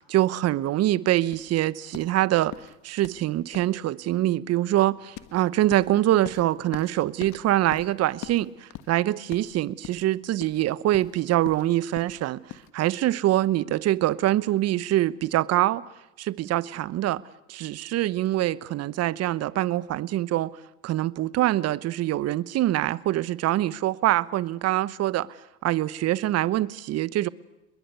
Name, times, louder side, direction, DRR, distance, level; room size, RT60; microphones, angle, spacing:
voice 1, 0.0-2.5 2.8-12.4 12.7-15.8 16.2-17.2 17.5-20.5 20.8-25.3 25.6-27.3, right 14 dB, 40° right, 0.9 m, -24 dB
sound 1, 1.3-12.7, left 13 dB, 50° left, 1.6 m, -44 dB
30.0 x 21.5 x 6.9 m
hypercardioid pair, 85°, 40 cm